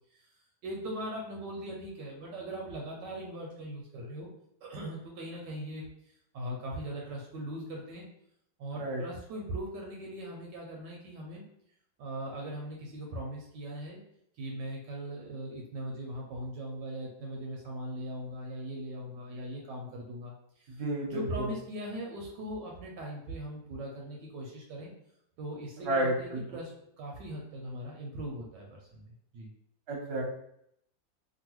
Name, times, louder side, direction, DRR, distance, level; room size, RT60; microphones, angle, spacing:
voice 1, 0.6-4.3 4.6-5.8 6.3-8.1 8.6-11.5 12.0-14.0 14.4-20.8 21.1-24.9 25.4-26.7 27.0-29.5, right 1 dB, 75° right, -1 dB, 1.1 m, -40 dB
voice 2, 20.7-21.5 25.8-26.4 29.9-30.2, right 1 dB, 45° right, -3 dB, 0.8 m, -31 dB
3.0 x 2.5 x 2.9 m, 0.75 s
omnidirectional pair, 2.1 m